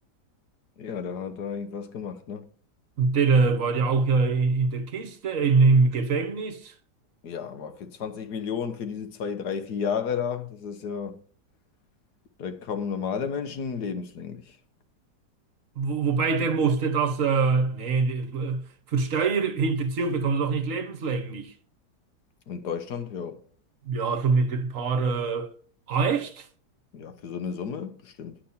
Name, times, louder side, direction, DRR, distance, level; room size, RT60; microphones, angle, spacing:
voice 1, 0.8-2.5 7.2-11.2 12.4-14.6 22.5-23.4 26.9-28.4, left 6 dB, 70° left, 1.6 m, -32 dB
voice 2, 3.0-6.7 15.7-21.5 23.8-25.5 25.9-26.5, right 4 dB, 50° right, 1.5 m, -24 dB
10.0 x 5.8 x 5.6 m
omnidirectional pair, 1.8 m